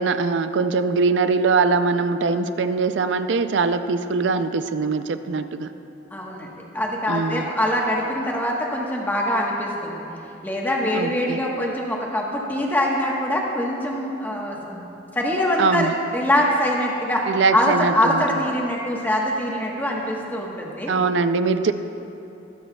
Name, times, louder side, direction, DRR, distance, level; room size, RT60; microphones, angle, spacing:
voice 1, 0.0-5.7 7.1-7.5 10.9-11.4 15.6-15.9 17.3-18.2 20.9-21.7, right 4 dB, 75° right, 11 dB, 0.4 m, -22 dB
voice 2, 6.1-10.0 10.4-14.8 15.1-17.2 17.5-20.9, left 1 dB, 10° left, -2 dB, 1.2 m, -23 dB
22.5 x 7.7 x 2.3 m, 2.8 s
head